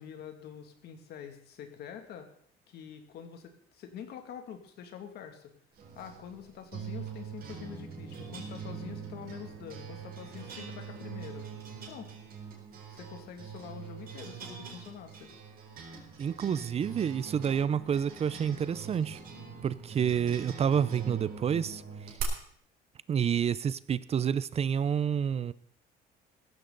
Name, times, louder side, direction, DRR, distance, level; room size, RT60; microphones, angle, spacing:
voice 1, 0.0-2.3 2.7-5.5 6.0-11.4 11.9-12.1 12.9-15.3, left 8 dB, 75° left, 5 dB, 2.4 m, -46 dB
sound 1, 5.8-22.2, right 6 dB, 60° right, 4.2 m, -43 dB
voice 2, 16.2-19.2 19.6-21.8 23.1-25.5, right 8 dB, 40° right, 18 dB, 0.5 m, -29 dB
16.0 x 14.5 x 4.0 m, 0.63 s
cardioid pair, 110°, 17 cm